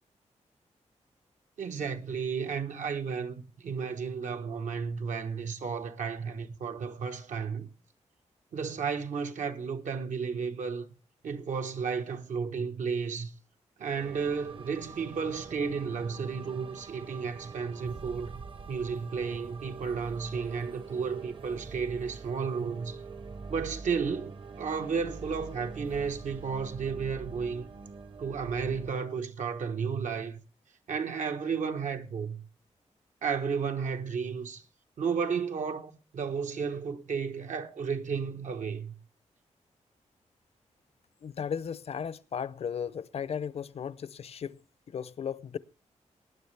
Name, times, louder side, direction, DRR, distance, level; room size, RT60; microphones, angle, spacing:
voice 1, 1.6-7.7 8.5-10.9 11.2-13.3 13.8-18.4 18.7-23.0 23.5-27.7 28.2-30.4 30.9-32.4 33.2-34.6 35.0-38.9, right 6 dB, 80° right, 1.2 m, -33 dB
sound 1, 13.9-28.9, right 4 dB, 45° right, 0.8 m, -45 dB
voice 2, 41.2-44.6 44.9-45.6, left 7 dB, 55° left, 0.5 m, -35 dB
18.5 x 9.8 x 3.3 m
wide cardioid pair, 155°, 12 cm